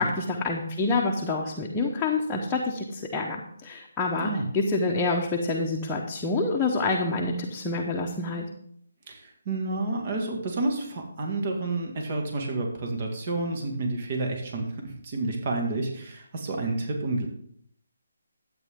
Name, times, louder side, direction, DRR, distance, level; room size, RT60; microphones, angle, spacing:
voice 1, 0.0-8.5, left 3 dB, 10° left, -3 dB, 1.0 m, -27 dB
voice 2, 9.1-17.3, right 2 dB, 40° right, 2 dB, 2.1 m, -30 dB
12.0 x 8.7 x 3.7 m, 0.66 s
hypercardioid pair, 160°, 0 cm